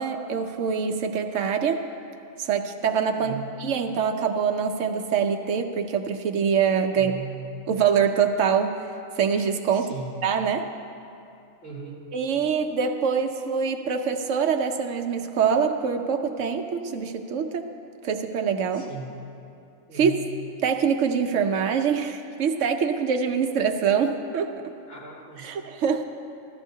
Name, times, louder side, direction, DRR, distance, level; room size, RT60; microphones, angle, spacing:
voice 1, 0.0-1.9 2.4-3.3 3.6-7.1 7.7-8.7 9.2-9.9 10.2-10.7 12.1-17.7 18.0-18.9 19.9-20.1 20.6-24.5 25.4-26.0, right 6 dB, 70° right, 4 dB, 0.9 m, -24 dB
voice 2, 3.1-3.5 6.9-7.4 9.7-10.1 11.6-12.0 18.7-19.1 19.9-20.2 24.9-25.5, right 6 dB, 65° left, -7 dB, 3.6 m, -38 dB
16.5 x 13.0 x 2.7 m, 2.6 s
omnidirectional pair, 1.4 m